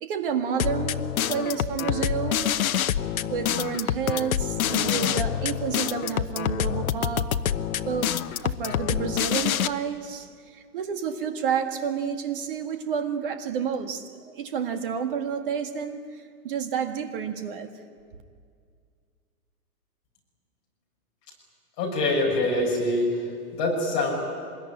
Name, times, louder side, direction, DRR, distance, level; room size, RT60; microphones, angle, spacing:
voice 1, 0.0-2.5 3.3-7.5 7.9-8.2 8.4-17.7, right 7 dB, 35° right, 1.8 m, -30 dB
sound 1, 0.6-9.7, left 9 dB, 60° left, 1.0 m, -26 dB
voice 2, 21.8-23.2 23.5-24.1, left 2 dB, 25° left, 6.3 m, -24 dB
25.5 x 21.0 x 10.0 m
hypercardioid pair, 170°, 47 cm